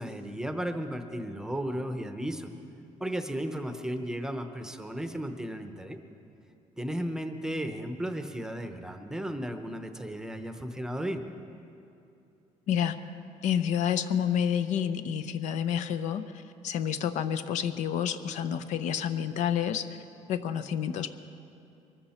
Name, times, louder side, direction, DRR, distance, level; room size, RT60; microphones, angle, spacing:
voice 1, 0.0-2.5 3.0-6.0 6.8-11.2, equal, 5° right, 7 dB, 0.8 m, -34 dB
voice 2, 13.4-20.0 20.3-21.1, left 9 dB, 70° left, 11 dB, 0.7 m, -29 dB
23.0 x 13.5 x 4.3 m, 2.7 s
cardioid pair, 150°, 13 cm